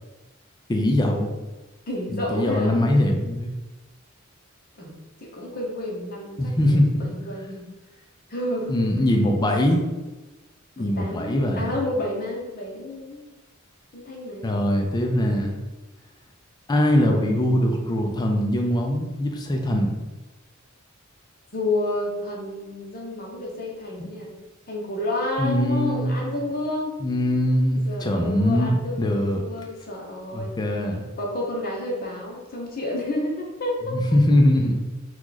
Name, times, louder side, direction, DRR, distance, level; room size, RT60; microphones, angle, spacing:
voice 1, 0.7-1.3 2.1-3.5 6.4-7.0 8.7-9.8 10.8-11.8 14.4-15.6 16.7-19.9 25.4-26.2 27.0-29.4 30.3-31.0 33.9-34.8, left 1 dB, 20° left, 2 dB, 0.4 m, -22 dB
voice 2, 1.9-2.8 4.8-4.9 5.2-7.7 8.3-8.9 10.8-13.2 13.9-14.5 21.5-24.3 24.7-26.9 27.9-30.5 31.2-34.0, left 1 dB, 45° left, -1 dB, 0.8 m, -30 dB
3.0 x 2.3 x 3.8 m, 1.1 s
head